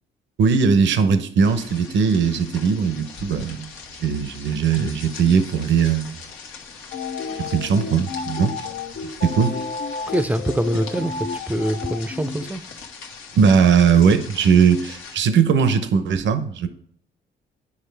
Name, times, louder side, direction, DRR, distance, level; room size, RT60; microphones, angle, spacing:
voice 1, 0.4-3.7 4.0-6.1 7.4-8.5 9.2-9.5 13.4-16.7, right 6 dB, 70° right, 0.8 m, -19 dB
sound 1, 1.4-15.2, left 5 dB, 85° left, 1.2 m, -41 dB
sound 2, 6.9-12.5, left 5 dB, 60° left, 0.8 m, -31 dB
voice 2, 10.1-12.6, right 1 dB, 10° right, 0.6 m, -24 dB
9.8 x 4.9 x 3.4 m
cardioid pair, 90°, 20 cm